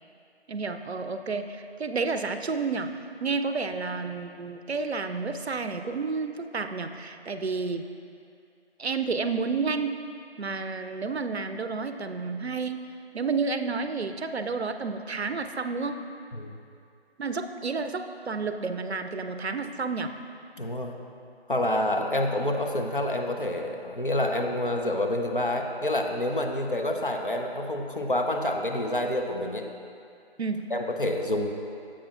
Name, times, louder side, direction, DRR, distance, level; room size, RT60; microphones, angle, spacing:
voice 1, 0.5-2.9 3.2-7.9 8.8-10.0 10.4-12.9 13.1-16.0 17.2-20.1 30.4-30.7, right 4 dB, 75° right, 8 dB, 0.5 m, -30 dB
voice 2, 20.6-20.9 21.5-29.7 30.7-31.5, left 1 dB, 50° left, 3 dB, 0.6 m, -28 dB
9.9 x 7.5 x 2.3 m, 2.5 s
figure-of-eight pair, 170°, 33 cm